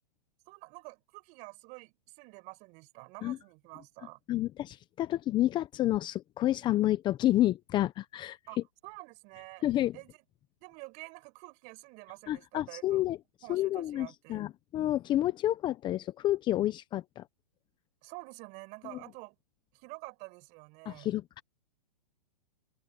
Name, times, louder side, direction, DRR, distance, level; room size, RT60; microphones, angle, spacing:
voice 1, 0.5-4.2 8.5-9.6 9.9-10.1 10.6-13.0 13.4-14.4 18.0-19.3 19.7-21.1, right 27 dB, 35° right, 6.5 m, -48 dB
voice 2, 4.3-8.4 9.6-10.0 12.3-13.2 13.5-17.3 18.9-19.0 20.8-21.4, left 14 dB, 20° left, 0.9 m, -29 dB
hypercardioid pair, 140°, 21 cm